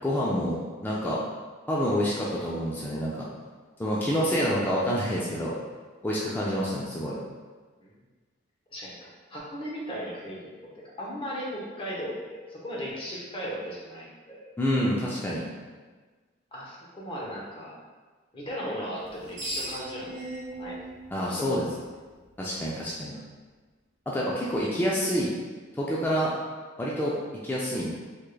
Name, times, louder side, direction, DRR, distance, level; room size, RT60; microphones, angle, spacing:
voice 1, 0.0-1.2 1.7-3.3 3.8-5.6 6.0-7.2 14.6-15.5 21.1-21.6 22.4-23.1 24.1-25.3 25.8-26.3 26.8-27.2 27.4-28.0, equal, 10° left, -6 dB, 0.3 m, -27 dB
voice 2, 8.7-10.5 11.0-14.5 16.5-17.8 18.3-20.2 20.5-20.8 21.3-21.4 22.8-23.0, equal, 25° left, -5 dB, 0.7 m, -37 dB
Screech, 19.0-22.3, right 1 dB, 70° right, 0.8 m, -39 dB
3.5 x 3.2 x 2.2 m, 1.4 s
head